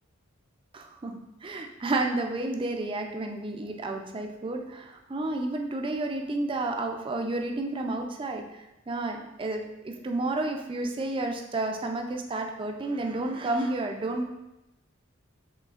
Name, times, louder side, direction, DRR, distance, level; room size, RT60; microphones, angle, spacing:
voice 1, 0.7-14.3, right 2 dB, 25° right, 3 dB, 0.4 m, -31 dB
4.9 x 3.2 x 2.4 m, 0.93 s
head